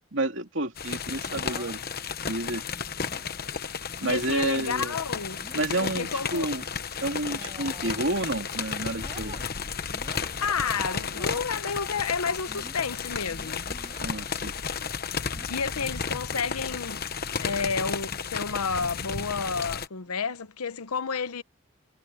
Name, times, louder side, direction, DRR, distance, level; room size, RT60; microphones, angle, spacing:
voice 1, 0.1-1.8 2.3-2.6 4.0-5.0 5.5-6.6 7.0-9.4 14.0-14.5, right 2 dB, 55° right, 3.0 m, -30 dB
sound 1, 0.8-19.9, left 6 dB, 45° left, 1.1 m, -33 dB
sound 2, 1.1-1.8 2.7-3.3 3.8-4.1 5.1-5.7 6.2-6.5 7.2-8.2 8.5-9.5 9.9-10.4 10.9-11.5 12.5-14.0 15.3-15.7 16.3-16.6 16.9-17.0 18.6-19.0 20.1-20.3, right 2 dB, 20° right, 4.7 m, -48 dB
voice 2, 4.0-5.4 5.8-6.5 10.4-13.7 15.5-17.0 17.4-21.4, left 5 dB, 90° left, 0.9 m, -30 dB
head